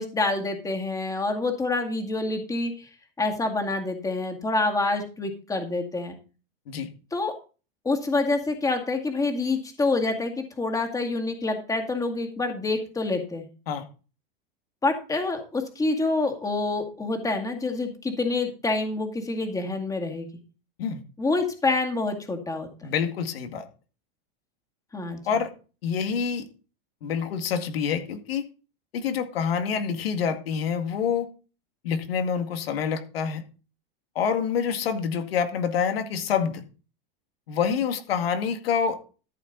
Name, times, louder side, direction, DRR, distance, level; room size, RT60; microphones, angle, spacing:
voice 1, 0.0-2.9 3.2-6.1 7.1-7.3 7.8-13.5 14.8-20.3 21.2-22.7 24.9-25.2, left 3 dB, 10° left, 2.0 m, -27 dB
voice 2, 22.8-23.7 25.3-25.5 25.8-26.4 27.0-28.5 28.9-31.3 31.8-33.4 34.2-36.6 37.5-39.0, left 7 dB, 85° left, 2.2 m, -27 dB
13.5 x 7.1 x 4.0 m
supercardioid pair, 135°, 29 cm